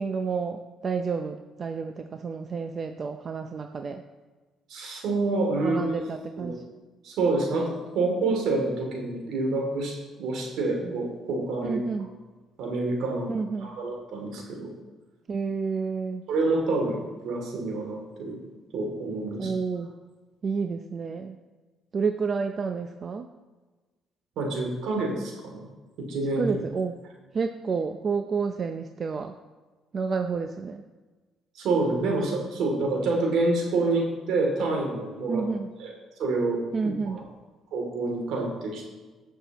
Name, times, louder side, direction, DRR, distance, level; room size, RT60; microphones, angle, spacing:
voice 1, 0.0-4.0 5.6-6.6 11.6-12.1 13.3-13.7 15.3-16.2 19.4-19.9 20.4-21.4 21.9-23.3 26.4-26.9 27.3-29.3 29.9-30.8 35.3-35.7 36.7-37.2, right 5 dB, 45° right, 6 dB, 0.6 m, -30 dB
voice 2, 4.7-6.0 6.4-6.5 7.0-11.8 12.6-13.3 13.6-14.7 16.3-18.4 18.7-19.5 24.4-25.7 26.0-26.5 31.5-35.5 35.8-35.9 36.2-36.6 37.0-37.2 37.7-38.9, right 3 dB, 75° right, 1 dB, 2.8 m, -27 dB
18.5 x 6.7 x 3.1 m, 1.3 s
cardioid pair, 85°, 0 cm